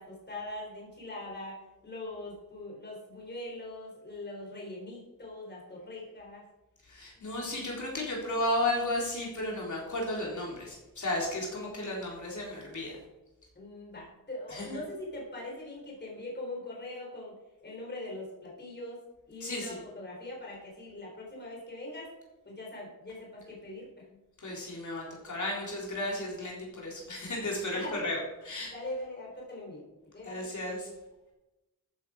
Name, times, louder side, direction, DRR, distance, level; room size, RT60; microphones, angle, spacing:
voice 1, 0.0-6.5 11.6-11.9 13.6-17.4 17.6-19.0 19.3-22.1 22.5-24.2 27.7-28.1 28.6-29.8 30.1-30.4, left 1 dB, 30° left, -2 dB, 3.7 m, -42 dB
voice 2, 6.9-13.0 14.5-14.7 19.4-19.8 24.4-28.7 30.2-30.9, left 1 dB, 55° left, -2 dB, 3.7 m, -34 dB
14.0 x 9.2 x 4.9 m, 1.0 s
wide cardioid pair, 170°, 35 cm